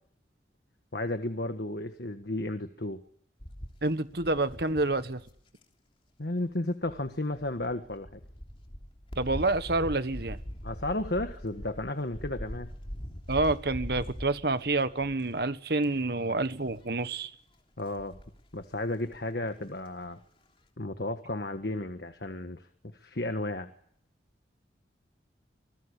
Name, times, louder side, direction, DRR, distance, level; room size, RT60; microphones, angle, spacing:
voice 1, 0.9-3.0 6.2-8.1 10.6-12.7 17.8-18.2 18.5-20.2 20.8-22.7 22.9-23.7, left 1 dB, 60° left, 1.6 m, -33 dB
sound 1, 3.4-5.6 6.8-15.4 15.8-16.1 16.4-16.9 17.8-18.6 19.1-19.2 19.5-19.6, equal, 30° left, 3.2 m, -42 dB
voice 2, 3.8-5.2 9.2-10.4 13.3-17.3, right 2 dB, 60° right, 1.4 m, -28 dB
26.0 x 20.5 x 8.4 m
head